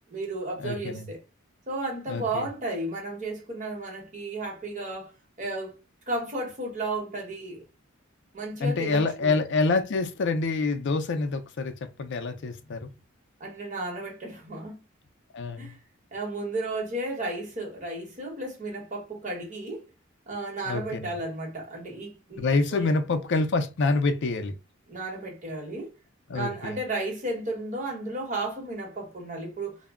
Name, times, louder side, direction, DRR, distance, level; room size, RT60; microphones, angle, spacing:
voice 1, 0.1-1.2 1.7-5.1 5.4-5.8 6.1-7.6 8.3-9.4 13.4-14.8 15.6-15.8 16.1-19.9 20.3-23.0 24.9-25.9 26.3-29.8, right 2 dB, 40° right, 1.1 m, -33 dB
voice 2, 0.6-1.1 2.1-2.5 8.6-12.9 15.3-15.7 20.7-21.1 22.4-24.5 26.3-26.8, left 3 dB, 60° left, 0.4 m, -27 dB
2.1 x 2.0 x 3.5 m
head